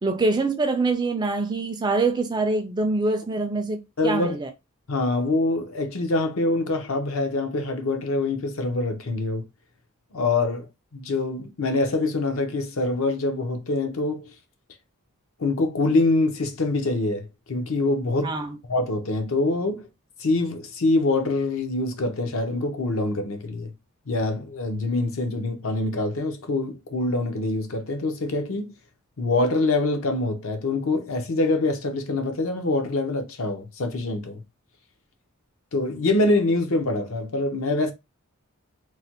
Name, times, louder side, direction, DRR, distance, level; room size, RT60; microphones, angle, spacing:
voice 1, 0.0-4.5 18.2-18.6, right 3 dB, 20° right, 0.4 m, -24 dB
voice 2, 4.0-4.4 4.9-9.4 10.1-10.7 10.9-14.3 15.4-18.4 18.7-19.9 20.2-23.7 24.1-28.7 29.2-34.4 35.7-37.9, left 2 dB, 65° left, 0.6 m, -25 dB
3.1 x 2.1 x 2.8 m
head